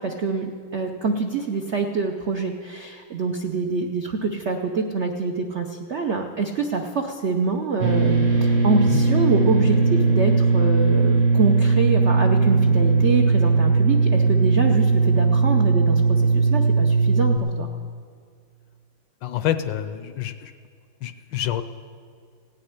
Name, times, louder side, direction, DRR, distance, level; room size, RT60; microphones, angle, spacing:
voice 1, 0.0-17.7, right 4 dB, 80° right, 3 dB, 0.6 m, -25 dB
sound 1, 7.8-17.4, right 4 dB, 45° right, 1.1 m, -18 dB
voice 2, 19.2-20.5 21.0-21.6, left 11 dB, 75° left, 11 dB, 1.2 m, -27 dB
17.0 x 6.5 x 9.9 m, 2.1 s
omnidirectional pair, 2.2 m